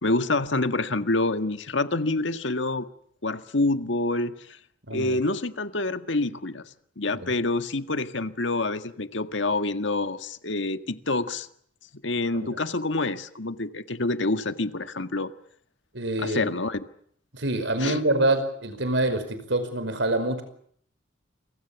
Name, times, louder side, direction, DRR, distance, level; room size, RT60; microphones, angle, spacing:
voice 1, 0.0-2.9 3.2-4.6 4.9-6.7 7.0-11.5 12.0-15.3 16.2-16.8 17.8-18.0, left 2 dB, 70° left, 1.7 m, -27 dB
voice 2, 4.9-5.2 7.1-7.3 12.3-12.6 15.9-16.5 17.3-20.4, right 2 dB, 65° right, 5.3 m, -26 dB
29.0 x 24.5 x 7.2 m
head